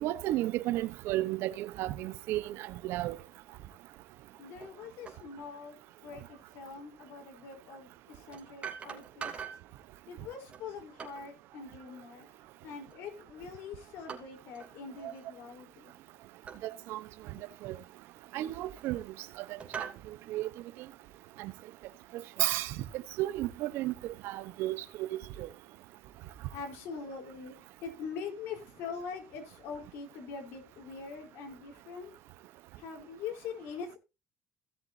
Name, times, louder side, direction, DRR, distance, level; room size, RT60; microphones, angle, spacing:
voice 1, 0.0-3.2 15.0-15.1 16.6-17.0 17.6-17.7 18.3-19.0 19.4-19.9 20.3-20.5 21.4-21.5 22.1-25.5, right 15 dB, 75° right, 0.9 m, -33 dB
voice 2, 4.4-5.8 6.0-9.4 10.1-12.3 12.6-15.9 26.5-32.1 32.8-34.0, left 5 dB, 75° left, 3.9 m, -43 dB
sound 1, 4.6-4.7 5.1-5.2 7.0-7.1 8.3-9.7 10.5-11.3 12.9-13.3 14.1-14.7 15.0-15.3 16.4-16.7 17.3-17.4 18.3-19.1 19.6-20.0, right 7 dB, 30° right, 2.8 m, -43 dB
17.0 x 7.5 x 2.7 m
cardioid pair, 115°, 4 cm